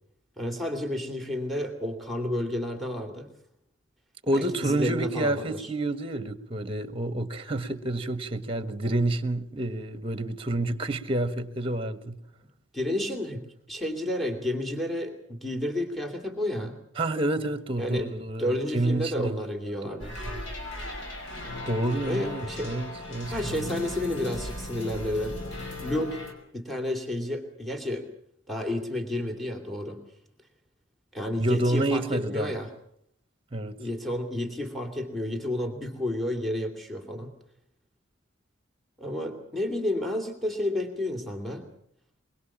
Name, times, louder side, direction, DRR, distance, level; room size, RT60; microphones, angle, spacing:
voice 1, 0.4-3.3 4.3-5.7 12.7-16.8 17.8-18.1 18.4-20.1 22.1-22.7 23.3-25.4 25.8-26.2 26.5-28.1 28.5-30.0 31.1-32.7 33.8-37.3 39.0-41.7, left 1 dB, ahead, 2.6 m, -31 dB
voice 2, 4.2-12.2 17.0-20.4 21.7-23.6 31.4-32.5 33.5-33.8, right 1 dB, 25° right, 1.4 m, -29 dB
sound 1, 20.0-26.3, left 1 dB, 70° left, 5.0 m, -37 dB
23.0 x 22.5 x 7.3 m
head